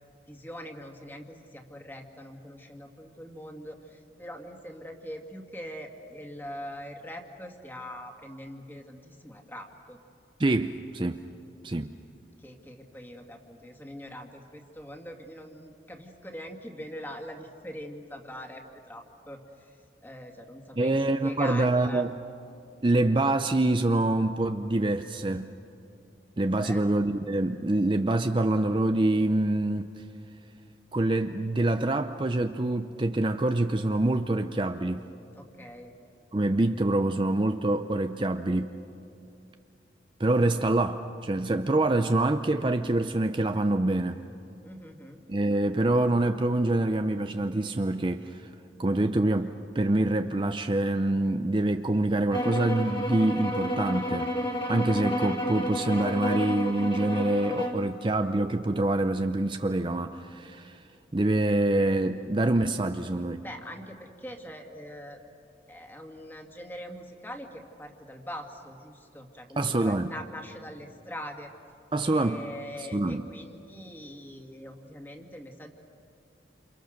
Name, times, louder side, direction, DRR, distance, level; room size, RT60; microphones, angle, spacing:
voice 1, 0.3-10.0 12.4-19.8 20.0-22.0 26.6-26.8 35.3-35.9 44.6-45.2 63.4-65.2 65.7-71.5 72.0-75.7, equal, 10° left, 3 dB, 2.2 m, -42 dB
voice 2, 10.4-11.3 11.6-11.9 20.8-22.1 22.8-25.5 26.4-29.9 30.9-35.1 36.3-38.8 40.2-44.2 45.3-48.5 48.8-54.3 54.7-60.8 61.1-63.4 69.6-70.1 71.9-72.4 72.9-73.2, right 2 dB, 30° right, 8 dB, 0.6 m, -26 dB
sound 1, 52.3-57.8, equal, 25° left, 2.5 m, -31 dB
28.5 x 28.5 x 6.6 m, 2.7 s
head